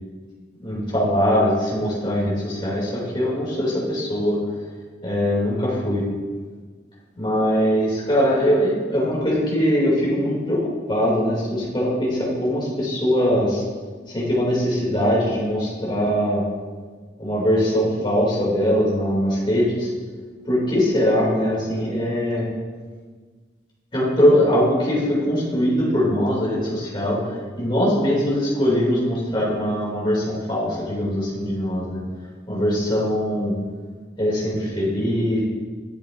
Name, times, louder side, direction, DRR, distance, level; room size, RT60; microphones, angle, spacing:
voice 1, 0.6-4.4 5.0-6.1 7.2-13.6 14.1-16.4 17.2-19.9 20.5-22.5 23.9-27.2 27.6-32.0 32.5-33.5 34.2-35.4, equal, 25° left, -6 dB, 2.6 m, -21 dB
11.5 x 7.2 x 2.6 m, 1.5 s
head